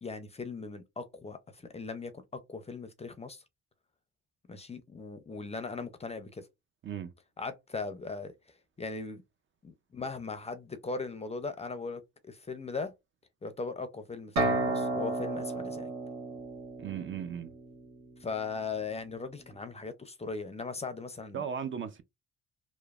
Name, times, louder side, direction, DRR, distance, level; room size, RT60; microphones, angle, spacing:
voice 1, 0.0-3.4 4.5-6.4 7.4-8.3 8.8-9.2 9.6-12.9 13.4-15.9 18.2-21.4, left 4 dB, 20° left, 0.5 m, -39 dB
sound 1, 14.4-18.1, right 2 dB, 65° right, 1.4 m, -33 dB
voice 2, 16.8-17.5 21.3-22.0, right 8 dB, 40° right, 0.4 m, -36 dB
3.0 x 2.0 x 2.3 m
cardioid pair, 90°, 30 cm